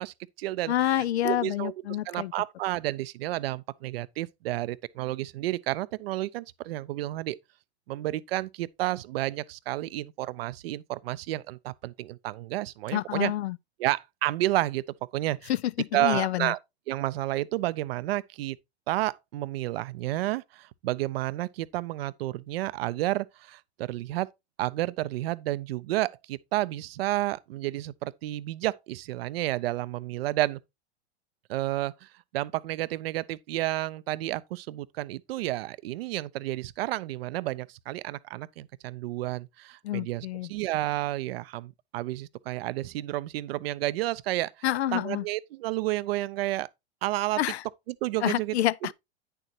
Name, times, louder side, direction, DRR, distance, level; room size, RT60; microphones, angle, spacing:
voice 1, 0.0-1.7 2.0-7.4 7.9-13.3 13.8-14.8 15.1-15.5 15.9-16.6 16.9-18.6 18.9-24.3 24.6-30.6 31.5-32.1 32.3-44.5 44.9-46.7 47.0-47.4 47.9-48.6, right 16 dB, 60° right, 0.6 m, -31 dB
voice 2, 0.7-2.3 12.9-13.6 15.8-16.5 39.8-40.5 44.6-45.2 47.4-47.6 48.2-48.9, left 13 dB, 75° left, 0.5 m, -28 dB
9.8 x 6.8 x 2.8 m
hypercardioid pair, 95°, 33 cm